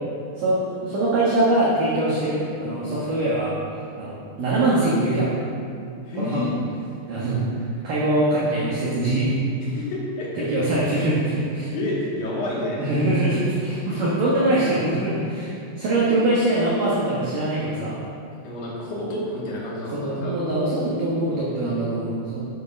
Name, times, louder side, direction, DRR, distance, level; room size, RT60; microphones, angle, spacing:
voice 1, 0.4-3.5 4.0-5.3 6.2-6.5 7.1-9.3 10.4-11.7 12.8-18.0 19.9-22.4, right 1 dB, 60° right, -7 dB, 2.4 m, -23 dB
voice 2, 6.0-6.5 9.6-10.7 11.7-12.9 18.4-20.3, left 1 dB, 50° left, -6 dB, 3.1 m, -29 dB
8.6 x 7.7 x 6.3 m, 2.5 s
omnidirectional pair, 5.6 m